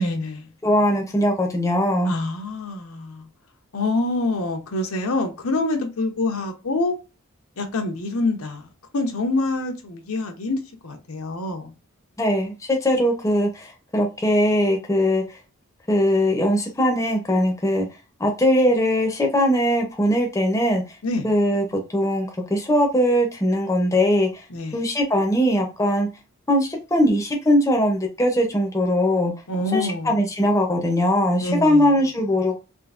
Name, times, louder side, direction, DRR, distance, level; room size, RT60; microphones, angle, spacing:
voice 1, 0.0-0.5 2.1-3.3 3.7-7.0 7.6-8.7 8.9-11.7 21.0-21.3 24.5-24.8 29.5-30.2 31.4-32.0, left 2 dB, 80° left, 0.8 m, -26 dB
voice 2, 0.6-2.1 12.2-15.2 15.9-17.9 18.2-20.8 21.2-21.6 21.9-24.4 24.7-26.1 26.5-29.3 29.7-32.6, equal, 15° left, 0.6 m, -20 dB
3.6 x 2.5 x 2.4 m
head